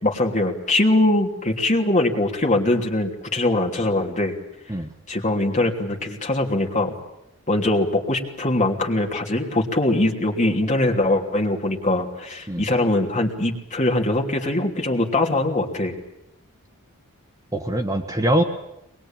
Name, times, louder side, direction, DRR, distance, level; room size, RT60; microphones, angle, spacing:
voice 1, 0.0-4.3 5.1-6.9 7.5-16.0, left 1 dB, 35° left, 2 dB, 3.0 m, -22 dB
voice 2, 17.5-18.4, right 1 dB, 15° right, 5 dB, 1.2 m, -22 dB
23.0 x 21.5 x 8.9 m, 0.86 s
head